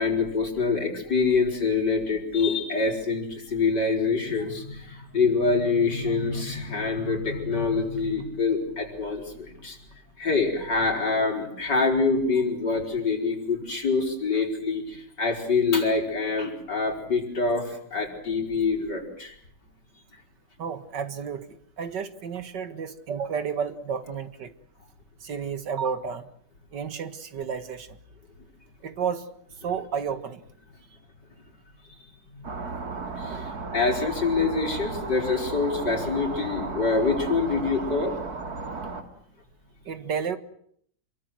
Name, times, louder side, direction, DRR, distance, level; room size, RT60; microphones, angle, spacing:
voice 1, 0.0-9.8 10.2-19.3 32.4-32.5 33.2-33.4 33.7-38.1, left 4 dB, 80° left, 2 dB, 5.6 m, -25 dB
voice 2, 20.6-21.5 21.8-24.5 25.2-26.3 26.7-27.9 28.8-29.3 29.6-30.4 33.3-33.5 39.9-40.4, right 6 dB, 85° right, 11 dB, 2.3 m, -31 dB
sound 1, 32.4-39.0, right 3 dB, 60° right, 2.9 m, -34 dB
27.0 x 23.0 x 7.7 m, 0.65 s
omnidirectional pair, 1.8 m